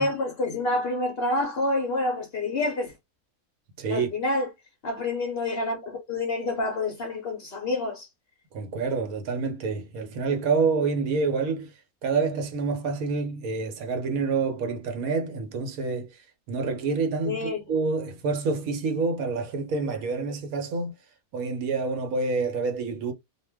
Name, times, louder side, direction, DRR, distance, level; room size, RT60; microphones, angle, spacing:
voice 1, 0.0-2.9 3.9-4.5 4.8-8.1 17.2-17.6, left 2 dB, 55° left, 0.6 m, -28 dB
voice 2, 3.8-4.1 8.5-11.7 12.0-16.1 16.5-20.9 21.3-23.1, right 4 dB, 75° right, 1.1 m, -27 dB
2.5 x 2.1 x 3.3 m
omnidirectional pair, 1.5 m